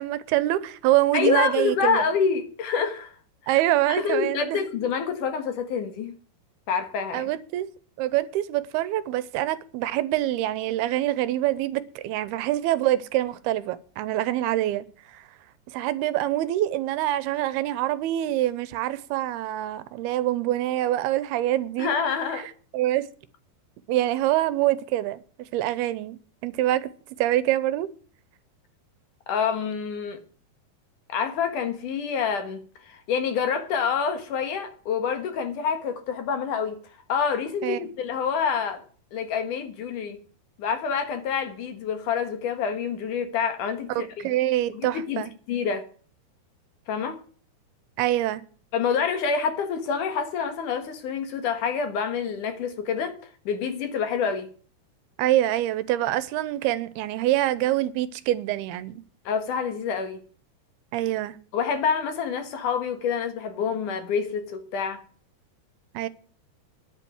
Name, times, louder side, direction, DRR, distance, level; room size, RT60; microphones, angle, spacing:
voice 1, 0.0-2.1 3.5-4.6 7.1-7.7 8.0-14.9 15.1-15.2 15.7-21.9 22.3-22.4 22.7-23.1 23.9-25.2 25.5-26.2 26.4-26.9 27.2-27.9 37.6-37.8 43.9-45.3 48.0-48.4 55.2-59.0 60.9-61.4 65.9-66.1, right 14 dB, 90° right, 2.8 m, -25 dB
voice 2, 1.1-3.2 3.5-3.6 3.9-6.2 6.7-7.3 21.8-22.5 29.3-30.2 31.1-36.8 37.1-38.8 39.1-40.2 40.6-44.3 44.7-45.8 46.9-47.2 48.7-53.2 53.5-54.5 59.3-60.2 61.5-65.0, left 6 dB, 60° left, 2.7 m, -27 dB
10.5 x 8.5 x 9.4 m
omnidirectional pair, 4.5 m